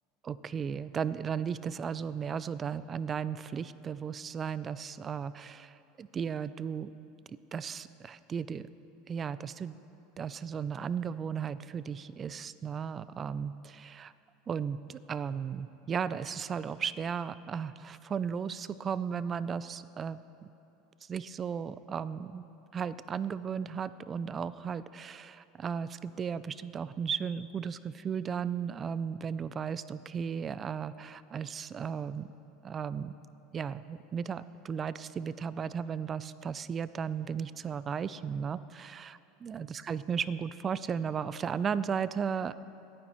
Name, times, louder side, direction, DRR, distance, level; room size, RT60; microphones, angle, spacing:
voice 1, 0.2-6.9 7.5-8.7 9.1-9.8 10.2-14.1 14.5-20.2 21.0-22.5 22.7-32.3 32.6-33.1 33.5-42.5, right 7 dB, 30° right, 16 dB, 0.4 m, -35 dB
24.0 x 9.4 x 3.1 m, 2.8 s
hypercardioid pair, 85°, 0 cm